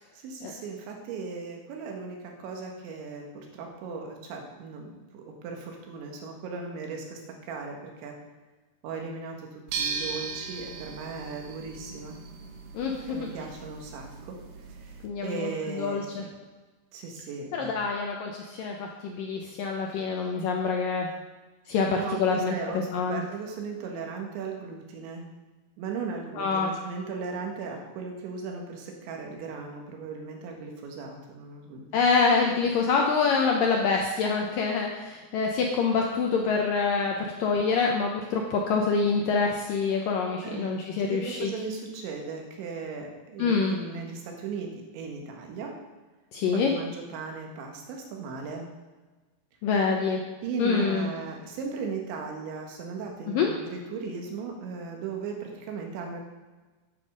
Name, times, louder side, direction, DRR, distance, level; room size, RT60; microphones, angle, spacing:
voice 1, 0.1-8.2 8.8-12.2 12.9-14.4 14.8-16.3 16.9-17.8 21.9-25.3 25.8-31.9 40.4-40.7 41.0-45.8 46.5-48.7 50.4-56.2, right 5 dB, 90° right, 2 dB, 4.0 m, -37 dB
sound 1, 9.7-15.1, right 5 dB, 70° right, 2.8 m, -38 dB
voice 2, 12.7-13.3 15.0-16.2 17.5-21.1 21.7-23.2 26.4-26.7 31.9-41.5 43.4-43.8 46.3-46.7 49.6-50.2 50.6-51.1 53.3-53.5, left 5 dB, 80° left, 1 dB, 2.0 m, -26 dB
9.9 x 8.7 x 6.4 m, 1.3 s
omnidirectional pair, 5.1 m